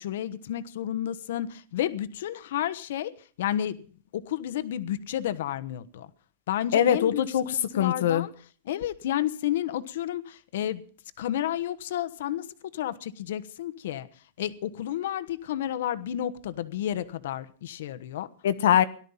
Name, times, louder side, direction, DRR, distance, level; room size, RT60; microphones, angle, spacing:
voice 1, 0.0-3.1 3.4-3.8 4.1-6.1 6.5-7.2 7.7-8.3 8.6-10.8 11.2-12.5 12.7-14.1 14.4-18.3, left 11 dB, 65° left, 12 dB, 1.2 m, -31 dB
voice 2, 6.7-8.3 18.4-18.8, left 10 dB, 85° left, 10 dB, 1.2 m, -22 dB
17.5 x 12.5 x 5.7 m, 0.43 s
supercardioid pair, 180°, 0 cm